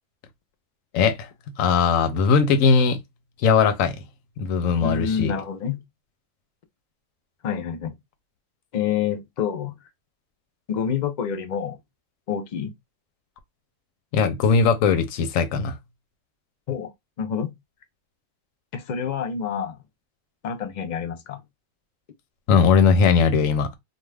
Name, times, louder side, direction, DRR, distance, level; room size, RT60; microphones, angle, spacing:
voice 1, 0.9-1.3 1.6-3.0 3.4-4.0 4.4-5.3 14.1-15.7 22.5-23.7, left 5 dB, 90° left, 1.0 m, -19 dB
voice 2, 4.8-5.8 7.4-7.9 8.7-9.7 10.7-11.8 12.3-12.7 16.7-16.9 17.2-17.5 18.7-19.8 20.4-21.4, left 7 dB, 55° left, 0.5 m, -27 dB
2.4 x 2.3 x 3.2 m
omnidirectional pair, 1.4 m